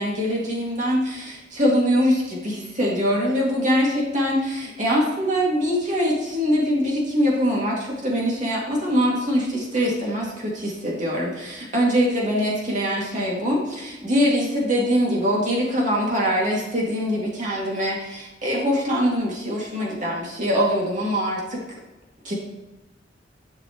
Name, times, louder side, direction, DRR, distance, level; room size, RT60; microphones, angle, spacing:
voice 1, 0.0-21.6 22.2-22.3, equal, 45° right, -3 dB, 2.3 m, -23 dB
11.0 x 6.2 x 3.1 m, 1.0 s
head